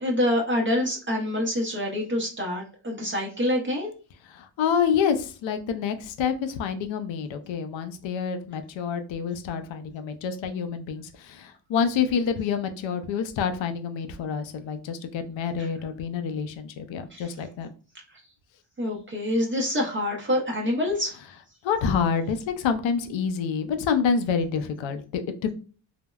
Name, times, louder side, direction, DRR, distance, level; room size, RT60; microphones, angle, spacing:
voice 1, 0.0-3.9 17.1-17.3 18.8-21.1, left 1 dB, 25° right, -2 dB, 0.6 m, -26 dB
voice 2, 4.2-17.7 21.6-25.5, left 6 dB, 80° left, 9 dB, 0.5 m, -27 dB
3.3 x 2.0 x 2.2 m, 0.36 s
cardioid pair, 110°, 45 cm